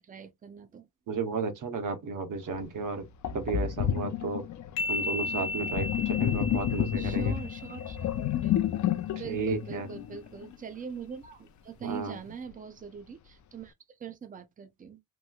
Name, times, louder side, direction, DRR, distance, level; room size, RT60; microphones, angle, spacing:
voice 1, 0.0-0.9 7.0-8.6 9.1-15.0, right 6 dB, 25° right, 0.5 m, -43 dB
voice 2, 1.1-3.1 3.3-4.5 4.9-7.4 9.2-9.9 11.8-12.2, right 4 dB, 60° right, 0.9 m, -33 dB
Sink (filling or washing), 2.5-2.6 3.2-10.5, left 10 dB, 55° left, 0.4 m, -30 dB
sound 1, 4.8-8.3, left 2 dB, 75° left, 0.8 m, -35 dB
3.1 x 3.0 x 2.3 m
wide cardioid pair, 160°, 36 cm